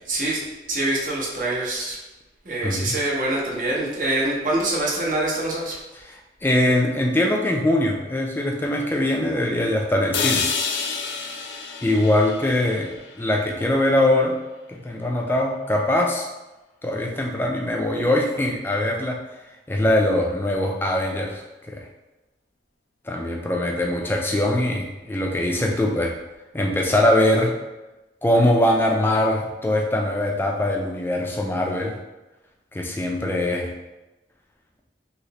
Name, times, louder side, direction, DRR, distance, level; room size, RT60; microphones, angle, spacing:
voice 1, 0.1-2.0 2.4-5.8, right 1 dB, 45° right, -3 dB, 0.7 m, -25 dB
voice 2, 2.6-3.0 6.0-10.4 11.8-14.4 14.7-16.3 16.8-19.2 19.7-21.8 23.1-26.1 26.5-27.5 28.2-31.9 32.7-33.7, left 1 dB, 10° left, 1 dB, 0.3 m, -22 dB
sound 1, 10.1-14.2, left 5 dB, 90° left, 0.4 m, -29 dB
3.1 x 2.8 x 2.8 m, 1.1 s
head